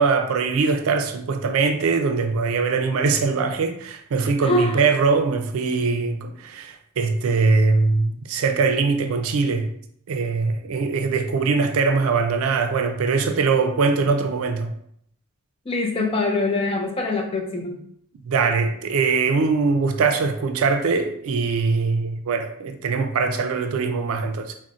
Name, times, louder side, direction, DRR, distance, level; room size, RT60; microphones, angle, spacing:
voice 1, 0.0-9.7 10.1-14.7 18.2-24.5, right 4 dB, 85° right, 0.4 m, -22 dB
voice 2, 4.4-4.8 15.7-17.8, left 2 dB, 25° left, 0.4 m, -23 dB
3.9 x 2.1 x 2.4 m
head